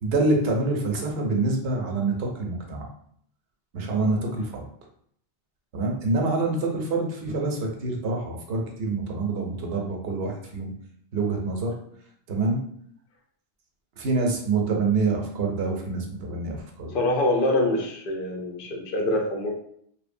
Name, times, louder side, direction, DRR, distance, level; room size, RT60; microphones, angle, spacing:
voice 1, 0.0-2.9 3.7-4.7 5.7-10.7 11.1-11.8 12.3-12.6 14.0-16.9, right 3 dB, 70° right, 1 dB, 0.8 m, -26 dB
voice 2, 16.9-19.5, left 1 dB, 60° left, 1 dB, 0.6 m, -25 dB
2.8 x 2.1 x 2.5 m, 0.66 s
omnidirectional pair, 1.1 m